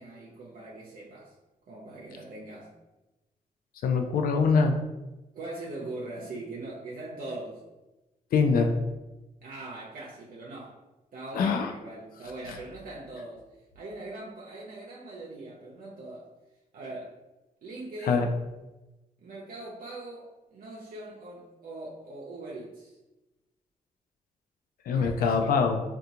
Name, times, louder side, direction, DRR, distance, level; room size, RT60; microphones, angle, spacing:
voice 1, 0.0-1.4 1.7-2.7 5.3-7.6 9.4-10.8 11.1-13.5 13.7-16.3 16.7-17.1 17.6-18.2 19.2-22.9 24.9-25.6, right 2 dB, 70° right, -4 dB, 0.6 m, -41 dB
voice 2, 3.8-4.7 8.3-8.7 11.4-11.7 18.0-18.3 24.9-25.8, left 5 dB, 80° left, 4 dB, 0.4 m, -23 dB
3.6 x 2.3 x 2.8 m, 1.0 s
cardioid pair, 65°, 15 cm